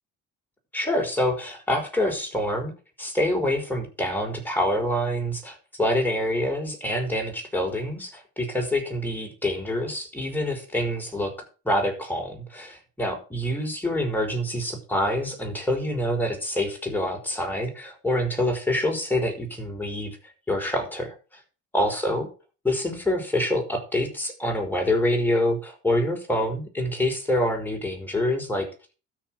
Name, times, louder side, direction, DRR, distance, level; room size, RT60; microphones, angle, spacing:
voice 1, 0.7-2.7 3.0-11.3 11.6-20.2 20.5-21.1 21.7-22.3 22.6-28.7, left 1 dB, 5° left, 1 dB, 5.3 m, -26 dB
13.0 x 6.8 x 6.4 m, 0.35 s
cardioid pair, 90°, 30 cm